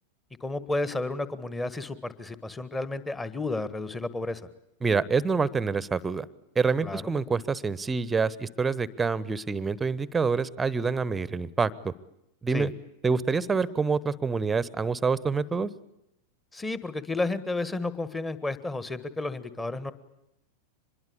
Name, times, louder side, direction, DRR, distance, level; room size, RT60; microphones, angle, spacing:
voice 1, 0.4-4.5 6.8-7.0 12.5-12.7 16.5-19.9, left 2 dB, 10° left, 14 dB, 1.6 m, -32 dB
voice 2, 4.8-6.2 6.5-11.9 12.4-12.7 13.0-15.7, right 5 dB, 15° right, 19 dB, 1.0 m, -26 dB
25.0 x 22.0 x 8.5 m, 0.83 s
figure-of-eight pair, 90°, 0 cm